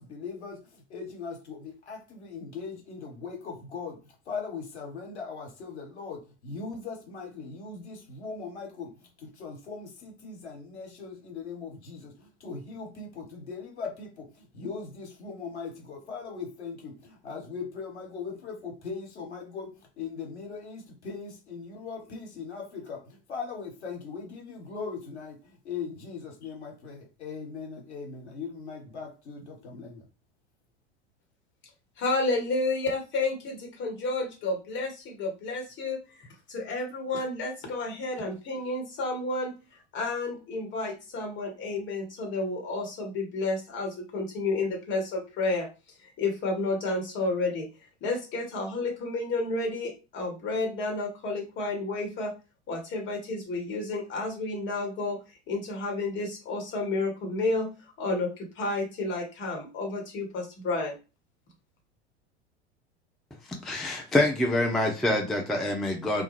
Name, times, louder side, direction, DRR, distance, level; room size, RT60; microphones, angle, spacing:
voice 1, 0.0-30.0, left 5 dB, 85° left, 0 dB, 1.0 m, -39 dB
voice 2, 32.0-39.5 39.9-45.7 46.0-47.7 48.0-52.3 52.7-55.2 55.5-57.7 58.0-60.9, left 2 dB, 35° left, 2 dB, 1.1 m, -31 dB
voice 3, 63.6-66.2, left 1 dB, ahead, 1 dB, 0.3 m, -26 dB
2.2 x 2.1 x 3.1 m, 0.31 s
figure-of-eight pair, 85°, 33 cm